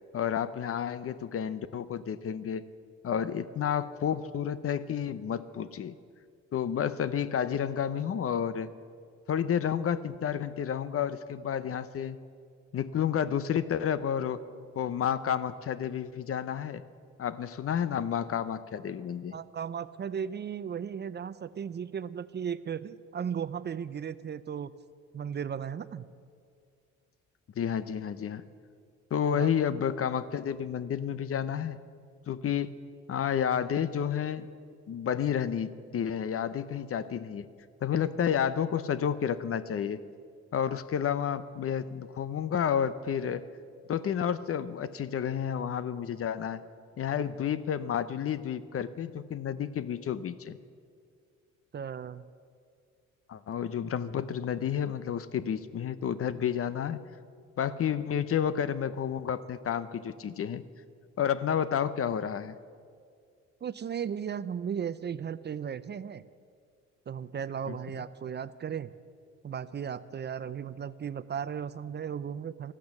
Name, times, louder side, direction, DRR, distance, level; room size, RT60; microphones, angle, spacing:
voice 1, 0.1-2.6 3.0-5.9 6.5-8.7 9.3-12.2 12.7-14.4 14.8-16.8 17.2-19.4 27.6-28.4 29.1-31.8 32.3-32.8 33.1-34.5 34.9-37.5 37.8-40.0 40.5-43.5 43.9-46.6 47.0-50.6 53.3-57.0 57.6-60.6 61.2-62.5 67.7-67.8, left 8 dB, 50° left, 15 dB, 0.7 m, -30 dB
voice 2, 19.3-24.7 25.1-26.1 29.3-29.5 51.7-52.2 63.6-66.2 67.1-68.9 69.4-72.7, right 8 dB, 35° right, 15 dB, 0.5 m, -36 dB
14.0 x 12.0 x 7.1 m, 2.1 s
cardioid pair, 90°, 30 cm